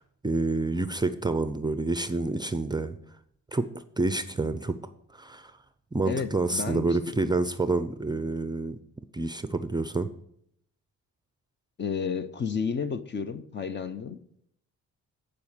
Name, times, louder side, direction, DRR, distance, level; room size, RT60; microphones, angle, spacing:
voice 1, 0.2-3.0 3.5-3.7 4.0-4.8 5.1-5.5 5.9-8.8 9.1-10.1, right 2 dB, 15° right, 11 dB, 0.5 m, -28 dB
voice 2, 6.1-7.0 11.8-14.2, left 6 dB, 35° left, 12 dB, 0.7 m, -31 dB
10.5 x 5.0 x 6.6 m, 0.71 s
cardioid pair, 90°, 30 cm